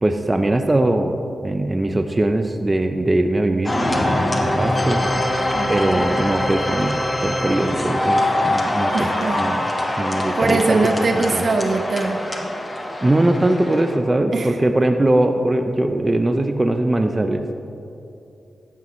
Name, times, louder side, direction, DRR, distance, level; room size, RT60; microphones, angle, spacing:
voice 1, 0.0-5.0 5.7-9.6 10.0-11.5 13.0-17.5, right 1 dB, 25° right, 6 dB, 0.6 m, -21 dB
sound 1, 3.6-14.0, left 1 dB, 20° left, 1.3 m, -23 dB
voice 2, 5.5-6.1 8.9-9.4 10.1-12.2 14.3-14.6, right 3 dB, 60° right, 5 dB, 0.9 m, -22 dB
14.0 x 9.1 x 3.2 m, 2.7 s
cardioid pair, 55°, 0 cm